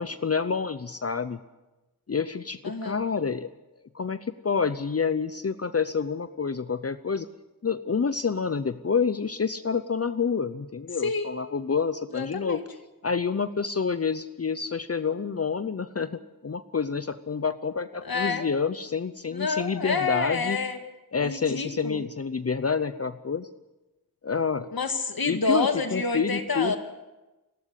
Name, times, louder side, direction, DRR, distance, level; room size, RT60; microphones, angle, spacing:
voice 1, 0.0-1.4 2.1-3.5 3.9-7.3 7.6-12.6 13.0-20.6 21.1-23.5 24.2-24.7 25.3-26.8, left 5 dB, 45° left, 13 dB, 0.7 m, -28 dB
voice 2, 2.6-3.0 11.0-11.3 12.1-12.6 18.0-18.4 19.3-20.8 21.2-22.0 24.7-26.8, left 4 dB, 85° left, 6 dB, 2.1 m, -28 dB
29.5 x 12.5 x 8.3 m, 1.1 s
wide cardioid pair, 85°, 35 cm